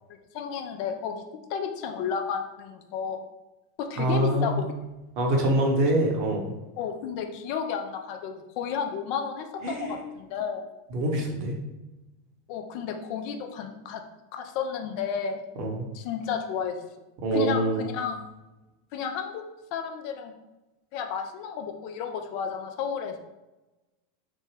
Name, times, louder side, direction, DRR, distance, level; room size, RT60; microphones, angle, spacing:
voice 1, 0.3-1.2 1.5-3.2 3.8-4.7 6.8-10.7 12.5-14.0 14.3-15.4 15.9-16.8 17.3-18.3 18.9-19.4 19.7-20.3 20.9-23.2, left 7 dB, 50° left, 5 dB, 0.4 m, -32 dB
voice 2, 4.0-4.6 5.2-6.5 9.6-10.0 10.9-11.6 15.6-15.9 17.2-17.8, right 1 dB, 50° right, 0 dB, 0.8 m, -25 dB
3.3 x 2.2 x 3.2 m, 1.0 s
figure-of-eight pair, 85°, 0 cm